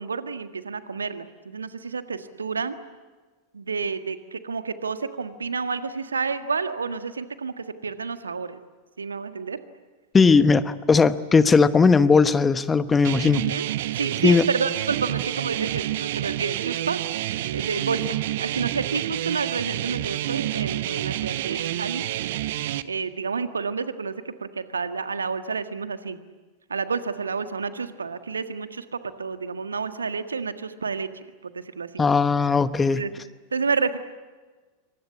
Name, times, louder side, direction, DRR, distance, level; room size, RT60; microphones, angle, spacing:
voice 1, 0.0-2.7 3.5-8.6 9.0-9.6 13.4-13.7 13.9-17.0 17.5-22.0 22.8-26.2 26.7-32.1 32.9-33.1 33.5-34.0, right 5 dB, 75° right, 10 dB, 1.6 m, -30 dB
voice 2, 10.1-13.4 14.2-14.4 32.0-33.1, left 4 dB, 15° left, 14 dB, 1.1 m, -18 dB
sound 1, 13.0-22.8, right 14 dB, 55° right, 0.9 m, -28 dB
27.0 x 25.0 x 8.5 m, 1.3 s
figure-of-eight pair, 90°, 0 cm